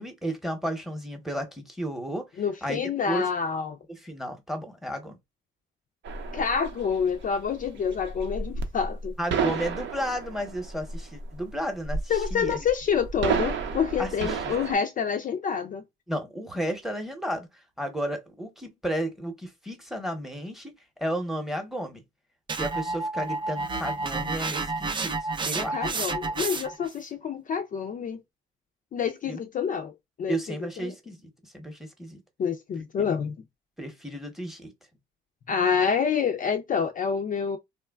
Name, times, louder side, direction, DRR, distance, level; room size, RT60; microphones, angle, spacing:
voice 1, 0.0-2.3 2.6-2.8 3.1-3.3 3.9-5.2 9.2-12.6 14.0-14.5 16.1-22.0 22.5-25.9 29.2-29.4 30.3-32.2 32.7-33.1 33.8-34.7, right 1 dB, ahead, 0.8 m, -33 dB
voice 2, 2.4-3.8 6.3-9.5 12.1-15.8 25.5-28.2 28.9-29.9 30.2-30.4 30.8-30.9 32.4-33.4 35.5-37.6, left 6 dB, 40° left, 0.4 m, -27 dB
sound 1, 6.0-14.7, right 5 dB, 70° right, 0.6 m, -32 dB
sound 2, 22.5-26.9, right 3 dB, 25° right, 0.4 m, -30 dB
3.1 x 2.1 x 2.3 m
cardioid pair, 90°, 20 cm